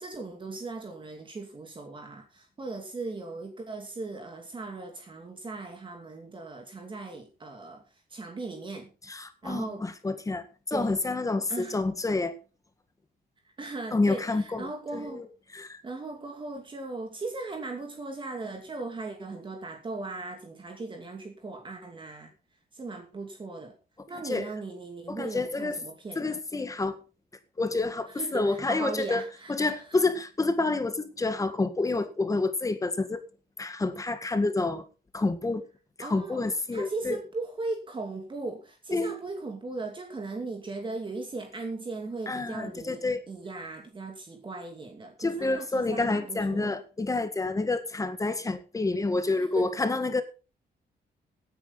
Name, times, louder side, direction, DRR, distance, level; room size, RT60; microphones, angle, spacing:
voice 1, 0.0-8.9 9.4-9.8 10.7-11.0 11.5-11.8 13.6-15.3 15.8-22.3 22.7-23.8 24.1-26.4 28.1-30.0 36.0-36.5 36.7-46.8 49.2-49.7, right 3 dB, 30° right, 3 dB, 2.6 m, -38 dB
voice 2, 9.1-12.3 13.9-15.3 15.5-15.8 24.3-24.5 25.1-25.8 26.2-27.0 27.6-29.2 29.5-33.2 33.6-34.8 35.1-35.7 36.0-37.2 38.9-39.1 42.3-43.2 45.2-50.2, left 3 dB, 20° left, 10 dB, 1.8 m, -28 dB
17.0 x 9.8 x 4.1 m, 0.33 s
wide cardioid pair, 150°, 17 cm